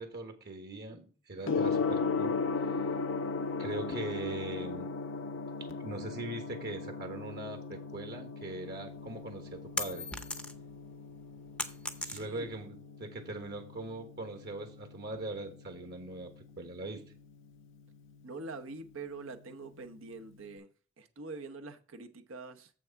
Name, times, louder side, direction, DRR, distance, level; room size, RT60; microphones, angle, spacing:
voice 1, 0.0-2.4 3.6-4.9 5.6-10.1 12.1-17.0, right 2 dB, 55° right, 1.3 m, -41 dB
Gong, 1.4-20.5, left 4 dB, 65° left, 0.7 m, -38 dB
sound 1, 9.0-10.8 11.1-12.6, left 2 dB, 5° left, 0.7 m, -38 dB
voice 2, 12.0-12.5 18.2-20.7 21.0-22.7, right 3 dB, 75° right, 0.9 m, -44 dB
7.4 x 6.2 x 4.6 m
head